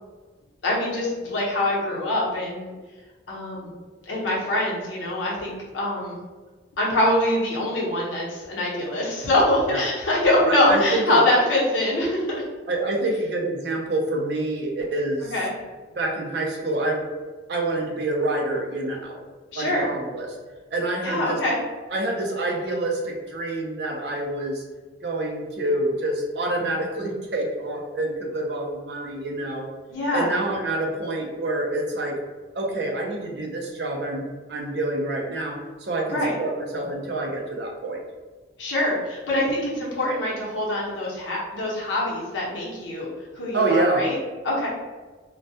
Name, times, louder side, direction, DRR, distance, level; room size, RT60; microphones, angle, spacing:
voice 1, 0.6-2.7 3.3-3.7 4.1-6.2 6.8-12.4 15.3-15.5 19.5-19.9 21.0-21.6 29.9-30.3 36.1-36.3 38.6-43.1 43.3-44.2 44.4-44.7, left 1 dB, 80° left, -5 dB, 0.8 m, -24 dB
voice 2, 10.5-11.2 12.7-15.3 15.9-17.0 17.5-19.2 19.5-20.4 20.7-21.4 21.9-24.6 25.0-29.7 30.1-32.2 32.5-38.0 43.5-44.0, right 2 dB, 60° right, 0 dB, 0.4 m, -27 dB
2.2 x 2.1 x 2.7 m, 1.3 s
head